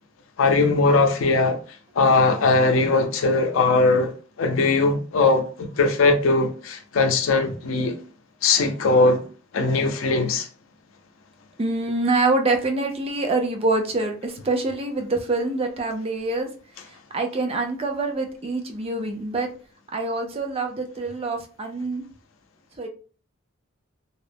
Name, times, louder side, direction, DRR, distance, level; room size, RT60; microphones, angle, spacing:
voice 1, 0.4-1.6 2.0-4.1 4.4-7.9 8.4-9.2 9.5-10.5, left 3 dB, 75° left, 0.5 m, -20 dB
voice 2, 11.6-16.5 17.1-19.5 19.9-22.0 22.8-22.9, right 2 dB, 30° right, 0.4 m, -25 dB
2.4 x 2.1 x 3.3 m
head